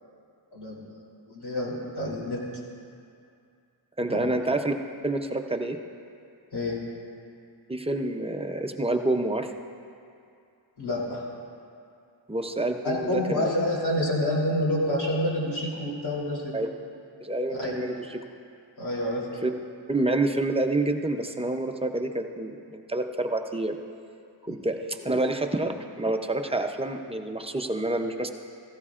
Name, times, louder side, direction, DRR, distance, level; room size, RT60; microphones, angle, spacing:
voice 1, 0.5-1.0 1.3-2.4 4.1-4.3 6.5-6.8 10.8-11.2 12.8-16.5 17.6-17.8 18.8-19.3 24.5-24.6, left 1 dB, 60° left, -4 dB, 3.2 m, -28 dB
voice 2, 4.0-4.7 5.0-5.8 7.7-9.5 12.3-13.5 16.5-16.7 17.2-18.0 19.4-19.5 19.9-23.8 24.4-28.3, right 2 dB, 15° right, 4 dB, 0.6 m, -28 dB
16.5 x 15.0 x 2.5 m, 2.4 s
wide cardioid pair, 130°, 44 cm